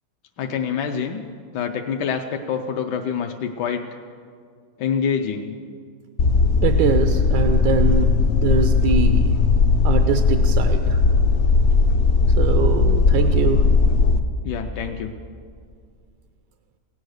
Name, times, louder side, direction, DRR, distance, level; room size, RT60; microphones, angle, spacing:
voice 1, 0.4-1.2 1.5-3.8 4.8-5.5 14.4-15.1, left 7 dB, 75° left, 4 dB, 1.2 m, -26 dB
sound 1, 6.2-14.2, left 4 dB, 60° left, 0.8 m, -17 dB
voice 2, 6.6-9.4 9.8-11.0 12.4-13.7, right 6 dB, 85° right, 7 dB, 1.4 m, -23 dB
16.5 x 9.2 x 6.4 m, 2.1 s
omnidirectional pair, 1.9 m